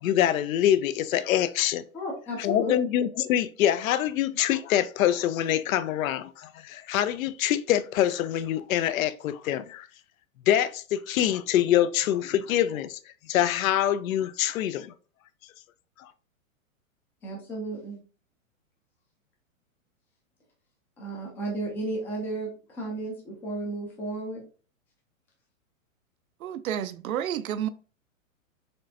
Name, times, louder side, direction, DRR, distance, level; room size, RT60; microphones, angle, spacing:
voice 1, 0.0-1.8 2.4-9.9 10.5-13.0 13.3-14.9 16.0-16.1, left 11 dB, 75° left, 0.5 m, -25 dB
voice 2, 1.9-2.8 17.2-18.0 21.0-24.4, right 2 dB, 5° left, 0.3 m, -33 dB
voice 3, 26.4-27.7, right 10 dB, 80° right, 0.6 m, -30 dB
4.4 x 3.2 x 2.6 m
hypercardioid pair, 135°, 41 cm